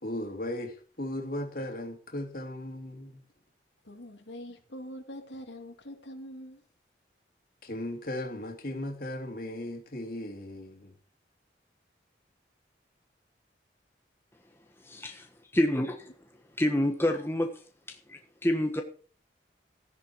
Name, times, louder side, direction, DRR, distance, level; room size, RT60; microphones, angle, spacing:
voice 1, 0.0-3.2 7.6-10.9, left 1 dB, 50° left, 3.1 m, -37 dB
voice 2, 3.8-6.6, equal, 85° left, 2.8 m, -44 dB
voice 3, 14.8-15.3 15.6-15.9 16.6-17.5 17.9-18.8, left 1 dB, 15° left, 1.4 m, -27 dB
15.5 x 10.5 x 4.7 m
head